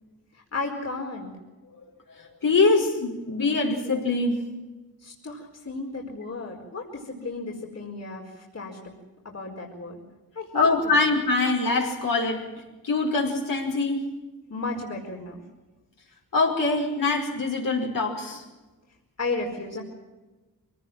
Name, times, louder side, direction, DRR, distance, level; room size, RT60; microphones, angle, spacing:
voice 1, 0.5-1.3 5.0-9.0 9.2-10.0 10.3-11.0 14.5-15.4 19.2-19.8, left 3 dB, 45° left, 0 dB, 4.8 m, -34 dB
voice 2, 2.1-4.4 10.5-12.5 12.8-14.0 16.3-18.4, left 3 dB, 65° left, -1 dB, 5.4 m, -23 dB
24.0 x 18.0 x 7.5 m, 1.2 s
cardioid pair, 80°, 36 cm